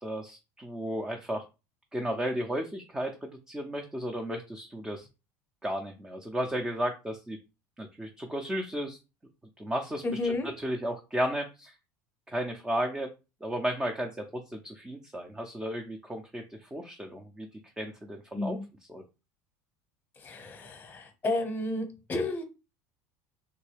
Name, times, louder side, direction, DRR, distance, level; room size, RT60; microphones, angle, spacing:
voice 1, 0.0-1.4 1.9-5.1 5.6-7.4 7.8-9.0 9.6-11.7 12.3-13.1 13.4-17.5 17.8-18.6 18.9-19.0, equal, 10° right, 0.5 m, -34 dB
voice 2, 10.0-10.5 18.3-18.6 20.2-22.4, left 2 dB, 25° left, 0.8 m, -32 dB
3.5 x 2.2 x 3.3 m
supercardioid pair, 110°, 8 cm